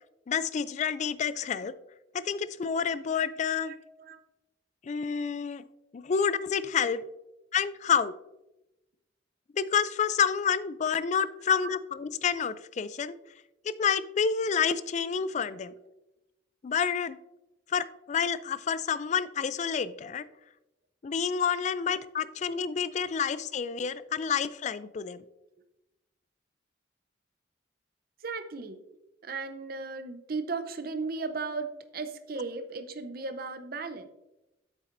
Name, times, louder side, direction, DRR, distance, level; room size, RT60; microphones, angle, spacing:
voice 1, 0.3-1.7 2.1-3.7 4.8-5.6 5.9-7.0 7.5-8.1 9.6-13.1 13.6-15.7 16.6-17.2 17.7-20.2 21.0-25.2, left 6 dB, 40° left, 16 dB, 0.3 m, -29 dB
voice 2, 3.6-4.2 11.6-11.7 15.6-15.8 28.2-28.8 29.2-34.1, right 4 dB, 50° right, 9 dB, 0.6 m, -36 dB
8.3 x 7.4 x 2.6 m, 0.94 s
head